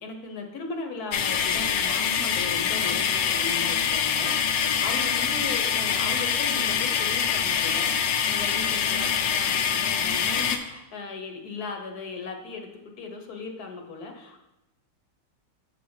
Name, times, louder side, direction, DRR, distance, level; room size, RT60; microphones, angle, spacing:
voice 1, 0.0-14.5, left 4 dB, 60° left, 3 dB, 1.4 m, -37 dB
sound 1, 1.1-10.6, left 7 dB, 80° left, 1.4 m, -25 dB
7.6 x 6.4 x 4.7 m, 0.93 s
omnidirectional pair, 1.9 m